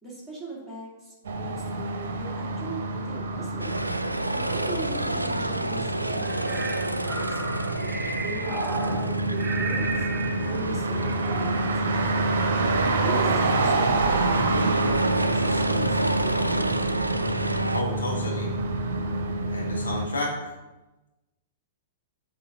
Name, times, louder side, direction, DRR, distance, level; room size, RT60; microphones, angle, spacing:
voice 1, 0.0-3.8 4.3-7.4 7.7-7.9 8.2-10.0 10.5-12.4 13.0-16.7, right 2 dB, ahead, -7 dB, 2.5 m, -39 dB
sound 1, 1.3-20.1, right 2 dB, 55° right, 0.9 m, -28 dB
sound 2, 3.6-17.8, right 1 dB, 85° right, 0.4 m, -29 dB
sound 3, 6.2-10.6 11.0-11.7, right 3 dB, 20° right, 0.8 m, -34 dB
voice 2, 17.7-18.5 19.5-20.4, left 1 dB, 70° left, -2 dB, 1.9 m, -31 dB
7.0 x 4.2 x 5.9 m, 1.0 s
figure-of-eight pair, 105°, 0 cm